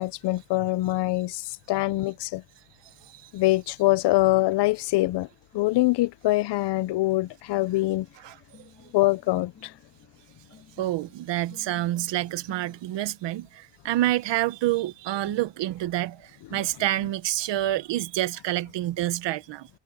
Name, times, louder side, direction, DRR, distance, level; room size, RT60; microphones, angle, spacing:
voice 1, 0.0-2.4 3.3-5.3 5.5-8.1 8.9-9.7 16.5-16.6, left 18 dB, 70° left, 0.6 m, -24 dB
Acoustic guitar, 4.8-12.8, left 7 dB, 35° left, 2.4 m, -56 dB
voice 2, 10.8-19.7, right 14 dB, 80° right, 1.0 m, -28 dB
cardioid pair, 165°, 42 cm